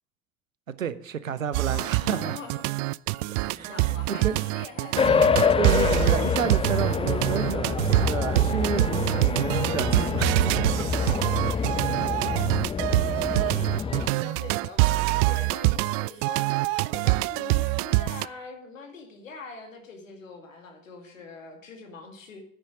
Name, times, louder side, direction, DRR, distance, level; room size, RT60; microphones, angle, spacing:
voice 1, 0.7-2.4 3.5-4.4 5.6-10.7, right 7 dB, 85° right, 0.8 m, -31 dB
sound 1, 1.5-18.3, right 21 dB, 60° right, 0.4 m, -25 dB
voice 2, 1.6-2.8 3.7-5.5 10.9-22.4, left 3 dB, 80° left, 2.2 m, -43 dB
sound 2, 3.1-9.2, right 1 dB, 25° right, 4.5 m, -49 dB
sound 3, 5.0-14.1, left 6 dB, 15° left, 0.5 m, -26 dB
10.5 x 9.8 x 5.0 m
figure-of-eight pair, 55°, 38 cm